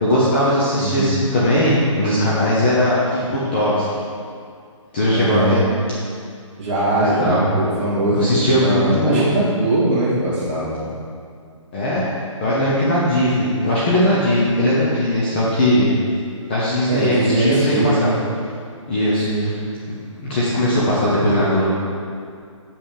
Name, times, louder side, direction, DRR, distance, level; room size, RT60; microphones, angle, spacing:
voice 1, 0.0-3.8 4.9-5.6 7.0-7.4 8.1-9.3 11.7-12.1 12.4-15.9 16.5-18.1 18.9-19.6 19.9-21.7, left 1 dB, 20° left, -8 dB, 0.8 m, -19 dB
voice 2, 0.7-1.1 5.1-5.6 6.6-10.8 16.9-18.1 19.3-19.5, right 1 dB, 20° right, -9 dB, 1.9 m, -21 dB
7.2 x 5.6 x 4.9 m, 2.3 s
hypercardioid pair, 170°, 17 cm